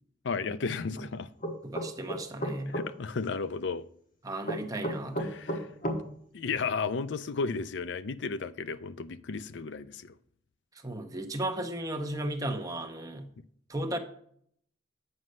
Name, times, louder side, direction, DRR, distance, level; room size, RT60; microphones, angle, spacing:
voice 1, 0.2-1.3 2.7-3.9 5.2-5.7 6.3-10.1, left 4 dB, 65° left, 0.5 m, -33 dB
sound 1, 1.4-2.9 4.4-6.0, equal, 45° left, 1.3 m, -32 dB
voice 2, 1.6-2.8 4.2-5.6 10.8-13.3 13.7-14.0, right 1 dB, 20° right, 0.8 m, -35 dB
7.9 x 6.3 x 5.4 m
head